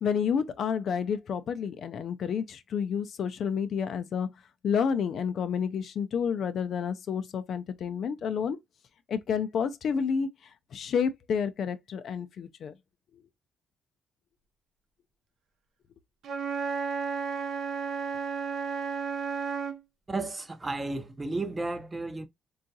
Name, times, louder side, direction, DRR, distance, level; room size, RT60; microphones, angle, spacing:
voice 1, 0.0-4.3 4.6-8.6 9.1-10.3 10.7-12.7, left 7 dB, 65° left, 0.4 m, -30 dB
Wind instrument woodwind instrument, 16.2-19.8, right 5 dB, 70° right, 0.5 m, -32 dB
voice 2, 20.1-22.3, right 2 dB, 25° right, 0.5 m, -33 dB
3.7 x 2.3 x 2.6 m
cardioid pair, 90°, 0 cm